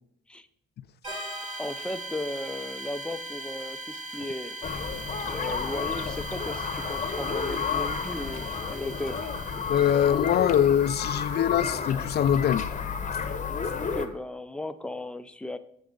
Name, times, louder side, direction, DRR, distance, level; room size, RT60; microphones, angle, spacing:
sound 1, 1.0-10.4, right 1 dB, 35° right, 3.8 m, -39 dB
voice 1, 1.6-4.6 5.3-9.2 13.8-15.6, left 1 dB, 5° left, 0.5 m, -36 dB
sound 2, 4.6-14.1, left 5 dB, 40° left, 0.9 m, -31 dB
sound 3, 8.3-10.2 10.9-11.0 11.5-11.7, left 6 dB, 85° left, 1.0 m, -49 dB
voice 2, 9.7-12.7, left 10 dB, 55° left, 0.4 m, -23 dB
7.6 x 7.1 x 3.8 m
cardioid pair, 90°, 20 cm